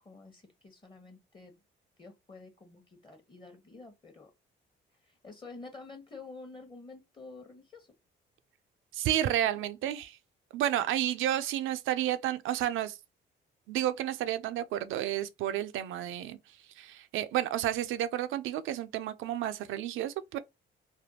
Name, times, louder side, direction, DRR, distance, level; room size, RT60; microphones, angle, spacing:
voice 1, 0.0-1.6 2.0-4.3 4.9-7.9 9.6-9.7, left 3 dB, 25° left, 0.9 m, -49 dB
voice 2, 8.9-10.1 10.5-13.0 13.7-20.4, right 12 dB, 85° right, 0.5 m, -31 dB
3.4 x 2.2 x 2.7 m
cardioid pair, 90°, 20 cm